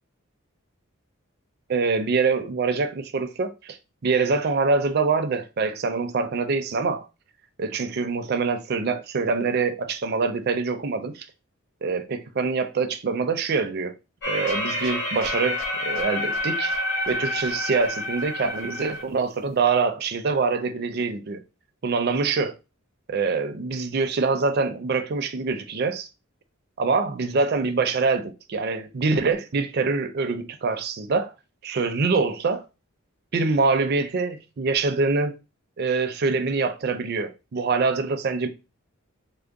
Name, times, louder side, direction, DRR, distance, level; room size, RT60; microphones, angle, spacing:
voice 1, 1.7-7.1 7.6-11.3 11.8-13.9 14.3-16.8 17.1-21.4 21.8-22.5 23.1-26.1 26.8-31.3 31.6-32.6 33.3-35.3 35.8-38.5, right 4 dB, 50° right, 0.4 m, -25 dB
sound 1, 14.2-19.0, left 1 dB, 55° left, 1.3 m, -28 dB
3.6 x 2.1 x 3.4 m
head